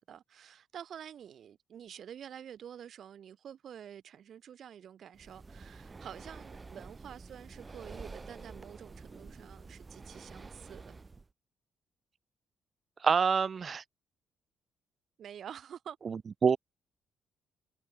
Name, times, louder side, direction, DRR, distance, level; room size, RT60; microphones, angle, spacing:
voice 1, 0.0-11.0 15.2-16.0, right 9 dB, 60° right, 3.6 m, -48 dB
Breathing, 5.1-11.3, right 3 dB, 25° right, 1.0 m, -49 dB
voice 2, 13.0-13.8 16.1-16.6, right 6 dB, 45° right, 0.6 m, -27 dB
cardioid pair, 90°, 0 cm